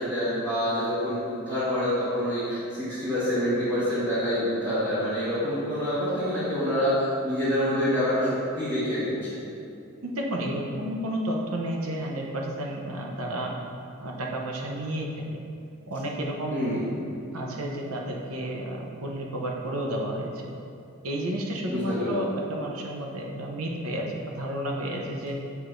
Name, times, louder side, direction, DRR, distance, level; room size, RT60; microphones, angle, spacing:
voice 1, 0.0-9.4 16.5-16.9 21.7-22.2, equal, 20° right, -14 dB, 1.3 m, -27 dB
voice 2, 10.0-13.5 14.0-15.4 15.9-17.0 17.3-20.5 21.0-25.4, right 1 dB, 75° right, 0 dB, 0.8 m, -31 dB
7.8 x 4.8 x 2.6 m, 2.6 s
head